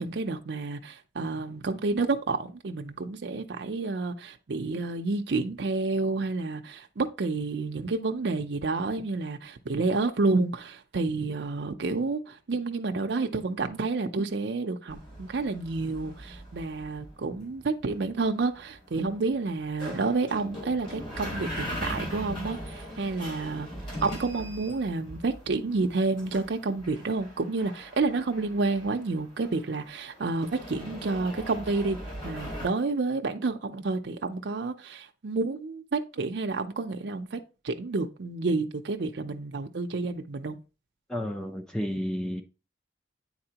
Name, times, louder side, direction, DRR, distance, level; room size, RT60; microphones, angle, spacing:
voice 1, 0.0-23.7 24.0-32.0 32.2-40.6, right 3 dB, 65° right, 0.5 m, -29 dB
sound 1, 14.9-32.7, equal, 30° left, 2.2 m, -40 dB
voice 2, 41.1-42.4, equal, 5° left, 0.5 m, -31 dB
8.7 x 4.1 x 2.8 m
head